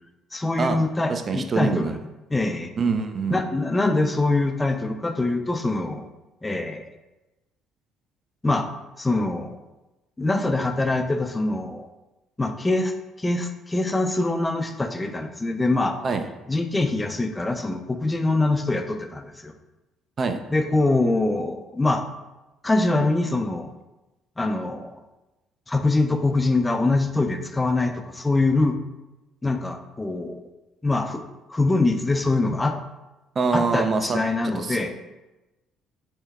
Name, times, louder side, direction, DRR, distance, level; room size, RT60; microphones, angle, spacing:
voice 1, 0.3-2.0 2.3-2.7 3.3-6.0 6.4-6.8 8.4-8.7 9.0-9.6 10.2-11.9 12.4-12.9 13.2-16.0 16.5-19.5 20.5-22.0 22.6-23.7 24.4-25.0 25.7-28.8 29.4-30.4 30.8-31.2 31.5-32.8 33.5-34.9, left 2 dB, 20° left, 7 dB, 0.4 m, -24 dB
voice 2, 1.1-2.0 2.8-3.4 16.0-16.2 20.2-20.4 33.4-34.2 34.6-34.8, right 4 dB, 45° right, 7 dB, 0.4 m, -24 dB
4.4 x 2.1 x 3.6 m, 1.0 s
supercardioid pair, 65°, 0 cm